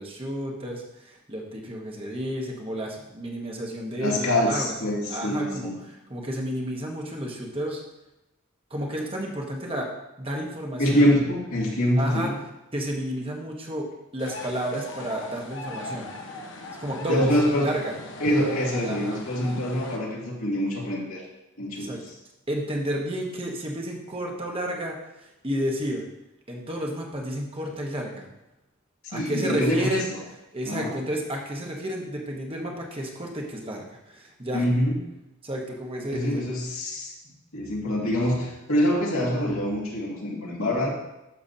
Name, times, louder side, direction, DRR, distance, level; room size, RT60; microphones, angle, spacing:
voice 1, 0.0-4.7 5.1-7.8 8.7-9.9 10.2-11.0 12.0-12.3 12.7-13.9 14.1-16.1 16.8-17.3 17.6-17.9 18.8-19.2 21.7-22.0 22.5-26.0 26.5-28.3 29.1-30.1 30.5-34.6 35.4-36.4, equal, 25° right, -1 dB, 1.2 m, -31 dB
voice 2, 4.0-5.7 10.8-12.4 17.1-17.7 18.2-21.2 21.6-22.1 29.1-30.0 30.6-30.9 34.5-35.0 36.1-37.1 37.5-40.9, equal, 80° left, -4 dB, 2.4 m, -25 dB
sound 1, 14.2-20.0, left 2 dB, 60° left, 1.2 m, -39 dB
12.0 x 6.8 x 2.8 m, 0.94 s
head